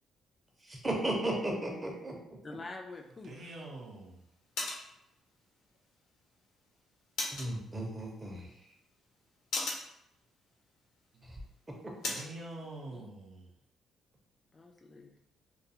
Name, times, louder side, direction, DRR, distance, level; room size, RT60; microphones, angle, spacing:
voice 1, 0.7-2.2 7.3-8.5 11.2-11.4, right 1 dB, 20° right, 0 dB, 0.7 m, -35 dB
voice 2, 2.4-3.6 12.4-12.5 12.9-13.1 14.5-15.2, left 3 dB, 30° left, 2 dB, 0.3 m, -47 dB
sound 1, 2.9-12.4, left 2 dB, 75° left, 0.6 m, -43 dB
voice 3, 3.2-4.2 12.1-13.5, right 2 dB, 60° right, -1 dB, 0.6 m, -45 dB
2.3 x 2.3 x 2.7 m, 0.81 s
cardioid pair, 90°, 0 cm